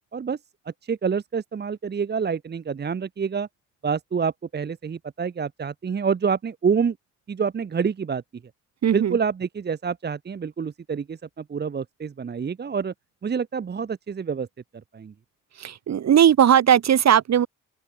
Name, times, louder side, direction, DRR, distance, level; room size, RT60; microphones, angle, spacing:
voice 1, 0.8-3.5 3.8-7.0 7.3-8.2 8.9-12.9 13.2-14.5 14.9-15.1, right 6 dB, 35° right, 1.2 m, -27 dB
voice 2, 8.8-9.2 15.6-17.5, right 9 dB, 60° right, 3.9 m, -18 dB
open air
cardioid pair, 90°, 30 cm